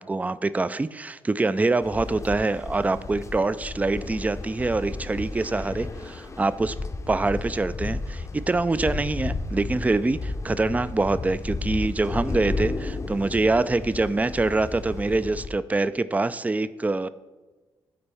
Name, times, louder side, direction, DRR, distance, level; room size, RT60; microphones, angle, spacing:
voice 1, 0.0-6.7 7.1-17.1, right 3 dB, 15° right, 14 dB, 0.3 m, -25 dB
sound 1, 1.8-15.5, left 3 dB, 30° left, 0.6 m, -33 dB
13.0 x 4.4 x 3.4 m, 1.3 s
supercardioid pair, 55°, 10 cm